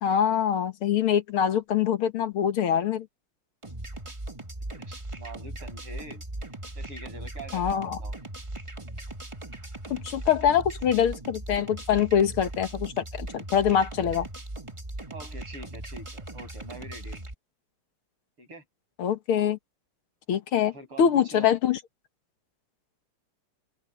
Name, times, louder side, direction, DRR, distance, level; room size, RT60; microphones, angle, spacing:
voice 1, 0.0-3.1 7.5-8.0 9.9-14.3 19.0-19.6 20.3-20.7 21.0-21.8, left 8 dB, 75° left, 2.2 m, -24 dB
sound 1, 3.6-17.3, right 1 dB, 15° right, 1.5 m, -39 dB
voice 2, 4.7-6.2 6.8-8.2 15.1-17.3 18.4-18.6 20.7-21.5, right 2 dB, 75° right, 8.9 m, -44 dB
open air
omnidirectional pair, 2.4 m